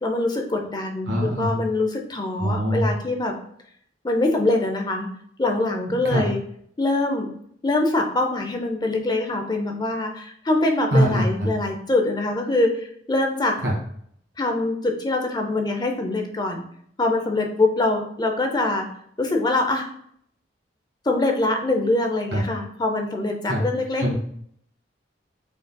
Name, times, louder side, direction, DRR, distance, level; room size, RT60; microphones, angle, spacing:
voice 1, 0.0-3.3 4.0-5.1 5.4-6.4 6.8-7.3 7.6-12.7 13.1-13.5 14.4-16.7 17.0-18.9 19.2-19.9 21.1-24.1, left 2 dB, 25° left, 3 dB, 0.5 m, -23 dB
voice 2, 1.1-1.6 2.4-2.9 6.0-6.2 10.9-11.5 13.6-13.8 22.3-22.4 23.5-23.6 24.0-24.1, equal, 90° right, -2 dB, 1.6 m, -22 dB
5.2 x 3.8 x 2.2 m, 0.66 s
head